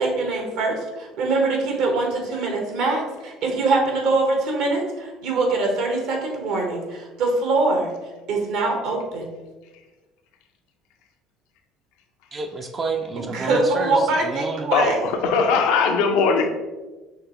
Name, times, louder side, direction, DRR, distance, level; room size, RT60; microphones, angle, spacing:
voice 1, 0.0-7.9 8.3-9.3 13.2-15.0, right 3 dB, 70° right, 2 dB, 1.2 m, -23 dB
voice 2, 12.3-14.7, right 3 dB, 35° right, 4 dB, 0.4 m, -29 dB
voice 3, 14.7-16.5, left 5 dB, 75° left, 4 dB, 0.5 m, -20 dB
5.7 x 3.1 x 3.0 m, 1.2 s
supercardioid pair, 80°, 0 cm